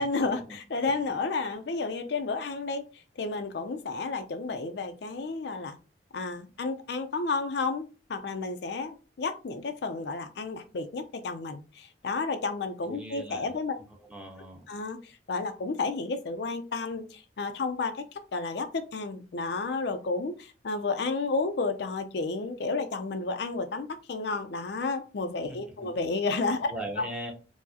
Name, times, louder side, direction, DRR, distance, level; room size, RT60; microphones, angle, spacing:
voice 1, 0.0-2.9 3.2-5.8 6.1-13.7 14.7-18.0 18.3-26.7, left 3 dB, 65° left, 8 dB, 0.4 m, -31 dB
voice 2, 12.8-13.6 14.0-14.7 25.5-25.9 26.7-27.3, right 1 dB, 5° right, 1 dB, 0.6 m, -39 dB
4.5 x 2.1 x 2.7 m, 0.33 s
head